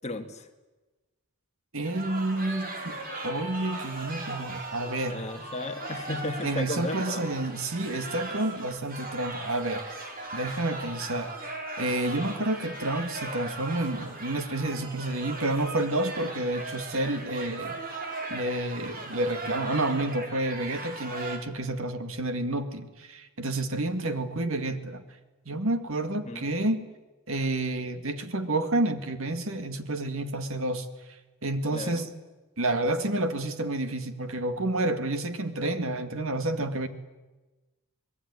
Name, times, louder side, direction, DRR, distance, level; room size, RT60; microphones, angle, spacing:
voice 1, 0.0-0.5 5.1-7.2 26.3-26.5 31.7-32.0, left 2 dB, 30° left, 5 dB, 2.2 m, -34 dB
voice 2, 1.7-3.0 3.2-5.2 6.4-9.9 10.3-11.5 11.8-17.8 18.3-25.0 25.5-26.9 27.3-30.9 31.4-32.1 32.6-36.9, right 2 dB, 65° right, 9 dB, 2.2 m, -29 dB
sound 1, 1.8-21.4, right 2 dB, 40° right, 4.9 m, -38 dB
27.0 x 21.0 x 9.8 m, 1.1 s
head